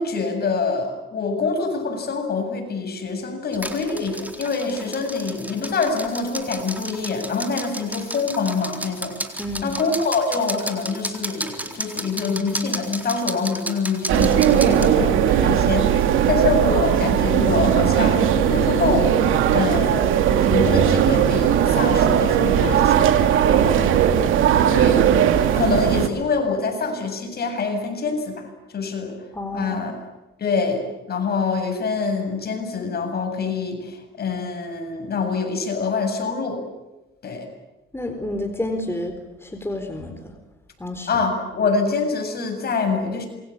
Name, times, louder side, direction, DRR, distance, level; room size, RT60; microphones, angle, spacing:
voice 1, 0.0-9.1 9.6-23.0 24.7-25.0 25.5-28.5 28.7-29.1 29.5-30.0 30.4-36.6 37.2-37.5 41.1-43.3, left 4 dB, 55° left, 4 dB, 8.0 m, -25 dB
sound 1, 3.5-14.9, right 1 dB, 10° right, 4.0 m, -33 dB
voice 2, 9.4-9.8 14.6-14.9 23.4-23.8 29.3-29.8 37.9-40.3 40.8-41.1, left 1 dB, 10° left, 5 dB, 4.2 m, -30 dB
sound 2, 14.1-26.1, right 9 dB, 85° right, 2.4 m, -18 dB
27.5 x 23.5 x 8.8 m, 1.0 s
cardioid pair, 90°, 20 cm